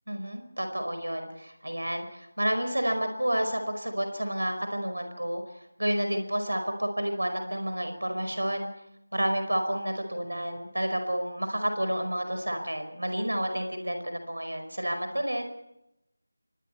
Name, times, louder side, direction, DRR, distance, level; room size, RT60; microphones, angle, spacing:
voice 1, 0.1-5.4 5.8-8.7 9.1-15.4, equal, 75° right, 6 dB, 5.1 m, -30 dB
29.0 x 24.0 x 4.5 m, 0.86 s
figure-of-eight pair, 165°, 0 cm